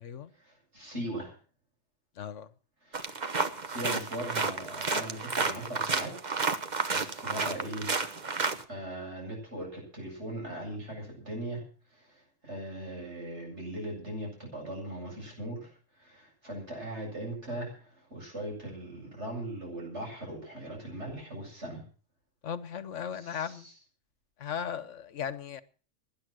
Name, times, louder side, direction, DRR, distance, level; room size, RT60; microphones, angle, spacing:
voice 1, 0.4-1.3 2.8-3.1 3.6-6.5 6.9-7.9 8.7-11.6 11.9-21.8 23.2-23.7, right 1 dB, 65° right, 8.5 m, -39 dB
voice 2, 2.2-2.5 22.4-23.7 24.4-25.6, left 8 dB, 75° left, 1.3 m, -37 dB
sound 1, 2.9-8.6, right 4 dB, 40° right, 1.2 m, -31 dB
19.0 x 10.5 x 6.2 m
omnidirectional pair, 1.3 m